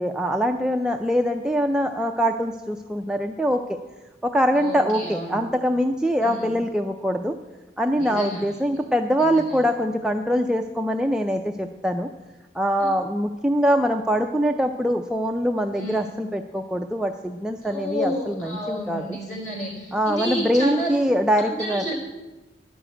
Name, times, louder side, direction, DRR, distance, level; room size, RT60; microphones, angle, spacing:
voice 1, 0.0-3.8 4.2-7.4 7.8-12.1 12.5-19.2 19.9-21.8, equal, 5° right, 3 dB, 0.4 m, -23 dB
voice 2, 4.5-5.4 6.2-6.5 7.9-8.4 9.2-9.6 12.8-12.9 15.8-16.0 17.6-21.0 21.5-22.0, equal, 40° left, -2 dB, 4.5 m, -31 dB
11.0 x 6.3 x 8.9 m, 1.1 s
head